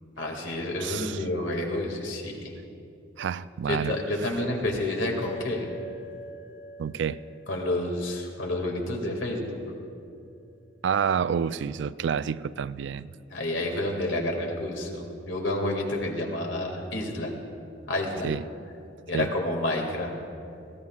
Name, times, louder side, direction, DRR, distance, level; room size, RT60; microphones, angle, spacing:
voice 1, 0.2-2.6 3.7-5.7 7.5-9.6 13.3-17.3 17.9-18.3 19.1-20.1, left 1 dB, 85° left, 2.2 m, -29 dB
voice 2, 0.8-1.2 3.2-4.0 6.8-7.2 10.8-13.1 18.2-18.4 19.1-19.3, right 7 dB, 65° right, 0.3 m, -28 dB
sound 1, 5.2-9.9, right 2 dB, 55° left, 3.8 m, -46 dB
20.5 x 16.5 x 2.4 m
head